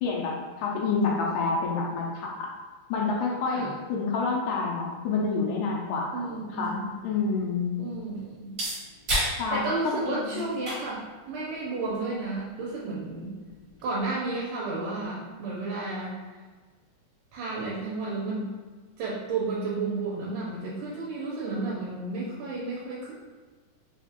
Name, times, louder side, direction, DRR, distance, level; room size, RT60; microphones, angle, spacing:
voice 1, 0.0-2.3 2.9-7.7 9.4-10.5, left 4 dB, 80° left, -2 dB, 2.0 m, -28 dB
voice 2, 6.1-7.0 7.8-8.5 9.5-13.4 13.8-16.2 17.3-18.5 19.0-23.1, right 3 dB, 80° right, -5 dB, 2.2 m, -32 dB
sound 1, 6.6-14.1, right 1 dB, 50° right, 1.1 m, -37 dB
5.1 x 2.4 x 2.8 m, 1.4 s
omnidirectional pair, 3.7 m